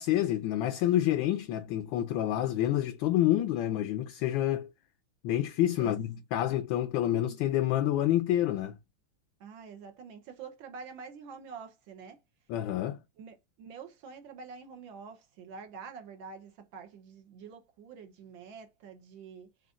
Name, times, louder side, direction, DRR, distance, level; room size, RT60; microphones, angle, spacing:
voice 1, 0.0-4.7 5.2-8.8 12.5-13.0, left 12 dB, 75° left, 1.2 m, -28 dB
voice 2, 9.4-12.2 13.2-19.5, right 5 dB, 70° right, 1.5 m, -47 dB
5.1 x 2.5 x 3.6 m
omnidirectional pair, 2.3 m